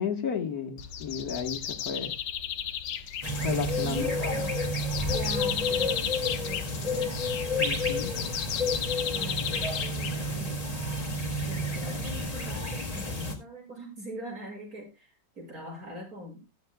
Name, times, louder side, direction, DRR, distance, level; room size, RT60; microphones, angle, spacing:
voice 1, 0.0-2.1 3.4-4.4 7.6-8.2, left 7 dB, 60° left, 4 dB, 1.6 m, -33 dB
sound 1, 0.8-10.6, left 9 dB, 85° left, 1.6 m, -35 dB
sound 2, 3.2-13.4, left 1 dB, 20° left, 1.8 m, -30 dB
voice 2, 3.8-4.5 5.0-7.2 9.1-10.7 11.4-16.4, right 1 dB, 50° right, 0 dB, 6.6 m, -42 dB
22.0 x 7.7 x 2.2 m, 0.25 s
omnidirectional pair, 1.9 m